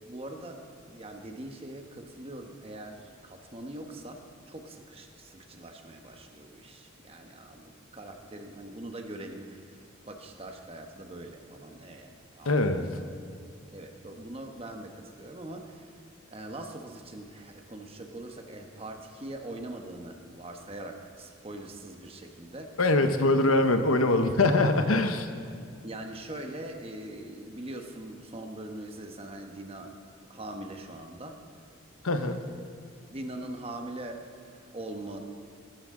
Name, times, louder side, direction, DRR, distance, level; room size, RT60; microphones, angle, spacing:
voice 1, 0.0-4.2 4.5-12.5 13.0-13.1 13.7-15.9 16.3-22.8 24.9-25.0 25.8-30.0 30.3-31.4 32.2-32.3 32.6-32.7 33.1-35.2, right 1 dB, 30° right, 4 dB, 1.1 m, -42 dB
voice 2, 12.4-12.9 22.8-25.3 32.0-32.4, left 2 dB, 85° left, 8 dB, 1.0 m, -23 dB
20.0 x 12.0 x 3.8 m, 2.4 s
head